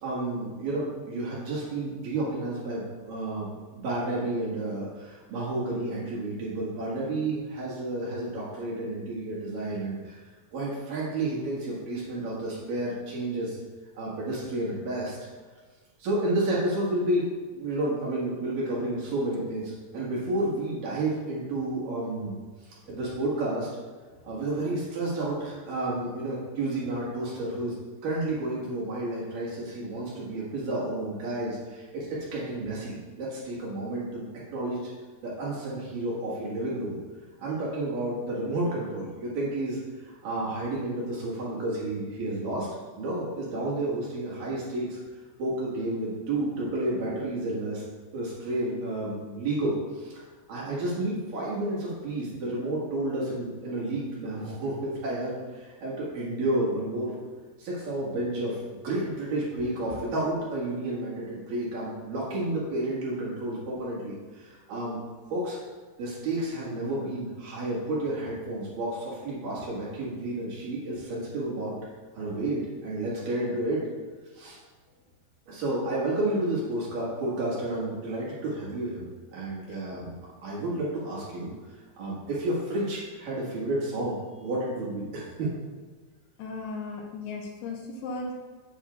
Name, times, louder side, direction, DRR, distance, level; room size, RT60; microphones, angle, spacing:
voice 1, 0.0-10.2 10.5-13.6 13.9-15.2 16.0-22.4 22.6-23.7 24.2-27.8 28.0-34.3 34.5-34.9 35.2-37.0 37.4-42.7 43.0-45.0 45.4-47.8 48.1-50.2 50.5-57.1 57.6-65.0 65.3-65.6 66.0-71.7 72.1-73.8 74.3-74.6 75.5-80.1 80.4-85.5, right 1 dB, 60° right, -7 dB, 3.0 m, -31 dB
voice 2, 79.7-80.2 86.4-88.3, left 3 dB, 80° left, 1 dB, 2.5 m, -38 dB
8.2 x 6.9 x 2.3 m, 1.4 s
omnidirectional pair, 4.8 m